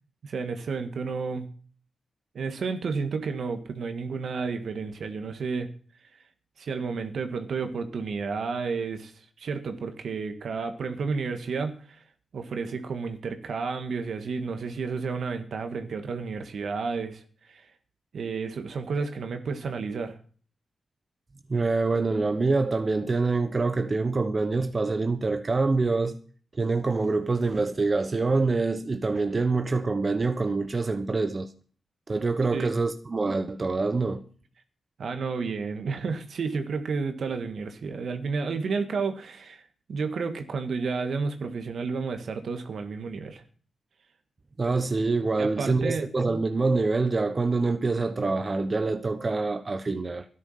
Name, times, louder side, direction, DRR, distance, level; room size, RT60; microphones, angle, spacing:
voice 1, 0.2-1.5 2.3-5.7 6.6-9.1 9.4-12.0 12.3-17.6 18.1-20.2 32.5-32.7 35.0-39.6 39.9-43.4 45.4-46.1, right 4 dB, 70° right, 1.8 m, -31 dB
voice 2, 21.5-26.1 26.5-31.5 32.1-34.2 44.6-50.3, right 3 dB, 40° right, 1.1 m, -25 dB
13.0 x 11.0 x 5.7 m
cardioid pair, 65°, 0 cm